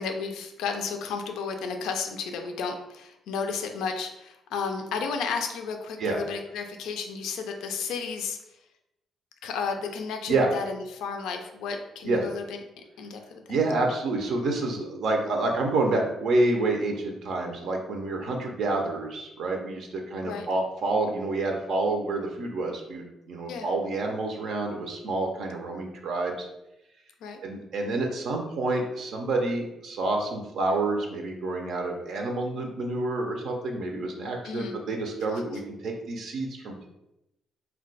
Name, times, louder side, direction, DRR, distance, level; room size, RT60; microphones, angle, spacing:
voice 1, 0.0-8.4 9.4-12.6 13.0-13.4 20.2-20.5 23.5-23.7 27.2-27.4 34.4-34.8, left 5 dB, 85° left, 4 dB, 0.3 m, -33 dB
voice 2, 13.5-26.5 27.4-36.9, right 2 dB, 70° right, 2 dB, 0.5 m, -28 dB
2.2 x 2.2 x 3.8 m, 0.89 s
cardioid pair, 90°, 0 cm